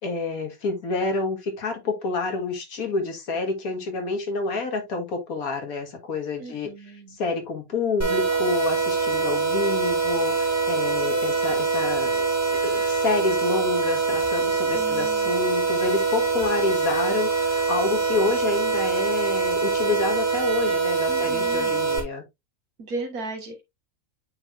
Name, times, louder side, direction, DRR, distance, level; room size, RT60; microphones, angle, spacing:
voice 1, 0.0-12.3 12.6-22.2, left 3 dB, 80° left, 2.1 m, -28 dB
voice 2, 6.4-7.2 14.7-15.3 21.1-21.8 22.8-23.6, right 3 dB, 85° right, 2.2 m, -36 dB
sound 1, 8.0-22.0, right 4 dB, 10° right, 2.4 m, -24 dB
8.7 x 4.6 x 2.5 m
omnidirectional pair, 1.5 m